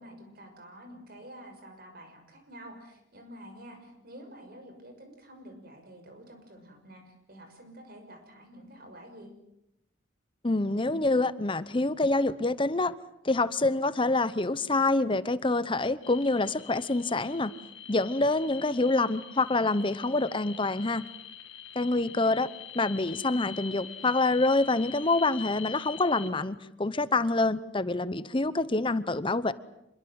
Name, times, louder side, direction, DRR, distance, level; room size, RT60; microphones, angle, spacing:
voice 1, 0.0-9.3 21.9-22.4, equal, 55° right, 5 dB, 6.3 m, -49 dB
voice 2, 10.4-12.9 13.2-17.5 17.9-21.0 21.7-22.5 22.8-29.5, left 2 dB, 25° left, 15 dB, 0.9 m, -26 dB
sound 1, 16.0-26.3, left 8 dB, 70° left, 2.6 m, -45 dB
26.5 x 22.0 x 8.0 m, 0.85 s
head